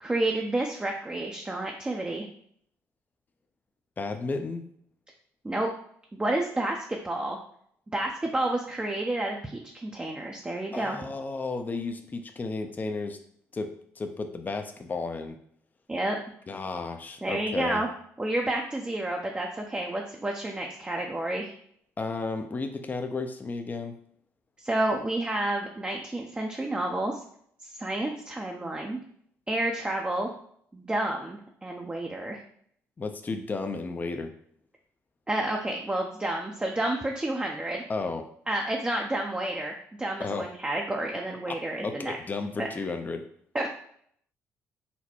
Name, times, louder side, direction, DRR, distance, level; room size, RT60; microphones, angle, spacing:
voice 1, 0.0-2.3 5.4-5.7 6.1-7.4 7.9-11.0 15.9-16.2 17.2-17.9 18.2-21.5 24.6-27.2 27.6-29.0 29.5-30.3 30.7-32.4 35.3-37.8 38.5-42.2 42.6-42.7 43.5-43.7, right 1 dB, 15° right, 0 dB, 0.6 m, -30 dB
voice 2, 4.0-4.6 10.7-13.2 13.5-15.4 16.5-17.8 22.0-23.9 33.0-34.3 37.9-38.3 40.2-40.5 41.5-43.2, left 3 dB, 30° left, 6 dB, 0.5 m, -33 dB
4.2 x 2.1 x 4.3 m, 0.65 s
supercardioid pair, 70°, 6 cm